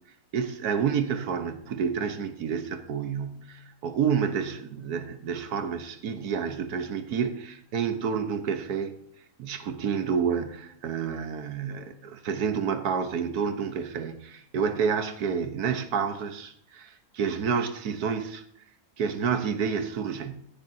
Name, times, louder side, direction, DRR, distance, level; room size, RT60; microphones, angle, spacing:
voice 1, 0.3-8.9 9.4-18.4 19.0-20.5, right 6 dB, 85° right, 1.5 m, -29 dB
16.5 x 10.0 x 2.7 m
omnidirectional pair, 1.6 m